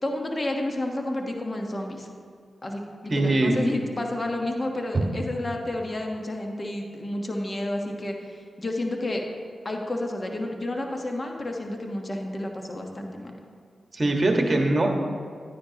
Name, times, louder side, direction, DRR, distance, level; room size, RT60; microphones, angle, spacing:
voice 1, 0.0-2.1 2.6-9.2 9.6-13.4, left 1 dB, 35° left, 2 dB, 1.2 m, -30 dB
voice 2, 3.1-3.6 4.9-5.0 13.9-14.9, right 2 dB, 40° right, 2 dB, 1.5 m, -22 dB
11.5 x 9.8 x 2.9 m, 2.1 s
cardioid pair, 55°, 0 cm